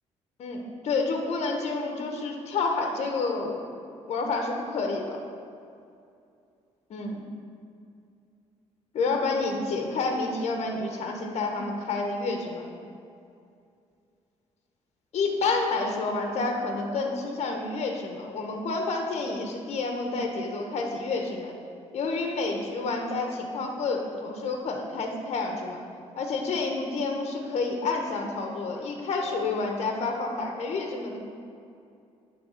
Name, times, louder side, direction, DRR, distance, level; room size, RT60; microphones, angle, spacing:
voice 1, 0.4-3.7 4.1-5.2 6.9-7.2 8.9-12.7 15.1-21.5 21.9-25.8 26.2-31.2, left 3 dB, 65° left, 2 dB, 1.1 m, -29 dB
9.7 x 3.6 x 6.5 m, 2.5 s
cardioid pair, 100°, 12 cm